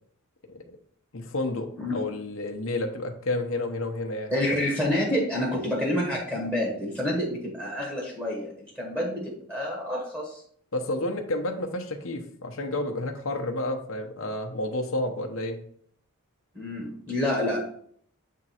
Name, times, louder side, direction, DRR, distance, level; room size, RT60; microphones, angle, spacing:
voice 1, 1.1-4.3 10.7-15.6, left 2 dB, 65° left, 4 dB, 0.8 m, -30 dB
voice 2, 4.3-10.4 16.5-17.6, left 1 dB, 10° right, -3 dB, 1.6 m, -28 dB
7.6 x 3.7 x 4.3 m, 0.62 s
head